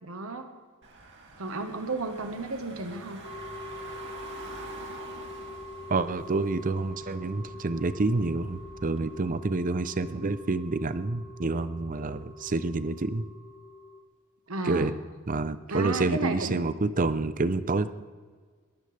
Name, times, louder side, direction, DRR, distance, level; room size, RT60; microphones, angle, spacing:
voice 1, 0.0-0.5 1.4-3.2 14.5-14.9 15.7-16.6, right 3 dB, 75° right, 6 dB, 1.4 m, -33 dB
Car / Engine, 0.8-9.0, right 2 dB, 60° right, 2.4 m, -47 dB
sound 1, 3.2-14.0, left 1 dB, 85° left, 2.3 m, -44 dB
voice 2, 5.9-13.3 14.6-14.9 15.3-17.9, right 3 dB, 40° right, 14 dB, 0.7 m, -28 dB
21.5 x 16.0 x 3.4 m, 1.5 s
head